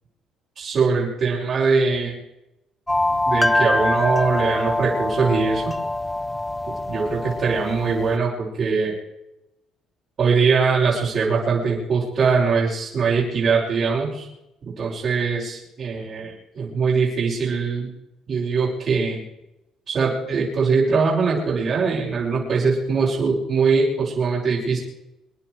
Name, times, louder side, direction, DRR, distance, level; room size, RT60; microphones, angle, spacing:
voice 1, 0.6-2.1 3.3-5.8 6.9-9.0 10.2-14.3 14.6-17.9 18.3-19.2 19.9-24.8, right 5 dB, 50° right, -8 dB, 6.0 m, -22 dB
sound 1, 2.9-8.2, left 2 dB, 10° left, 0.5 m, -24 dB
27.5 x 10.5 x 4.8 m, 0.88 s
cardioid pair, 105°, 0 cm